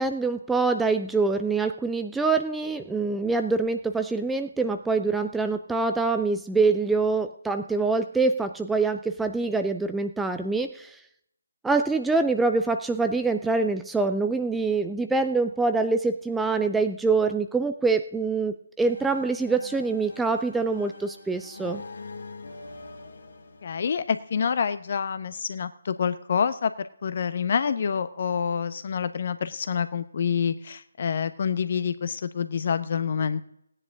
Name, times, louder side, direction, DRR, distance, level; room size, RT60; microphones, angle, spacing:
voice 1, 0.0-11.0 11.6-21.8, right 3 dB, 5° right, 7 dB, 0.5 m, -25 dB
sound 1, 18.8-24.6, left 3 dB, 60° left, 1.6 m, -44 dB
voice 2, 23.6-26.7 27.0-33.4, left 6 dB, 40° left, 13 dB, 0.9 m, -27 dB
17.0 x 10.0 x 3.8 m, 0.72 s
figure-of-eight pair, 150°, 0 cm